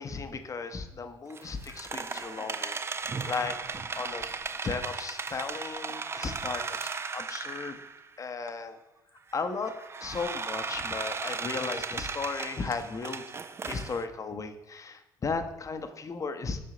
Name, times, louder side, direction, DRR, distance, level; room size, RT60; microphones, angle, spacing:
voice 1, 0.0-2.8 3.2-3.6 4.0-4.3 4.6-7.8 8.2-8.8 9.3-9.7 10.0-13.2 13.7-16.6, left 4 dB, 30° left, 8 dB, 0.8 m, -35 dB
sound 1, 1.3-8.1 8.5-8.6 9.3-14.1, right 5 dB, 20° right, 0.4 m, -36 dB
7.6 x 5.5 x 3.9 m, 0.96 s
figure-of-eight pair, 55°, 11 cm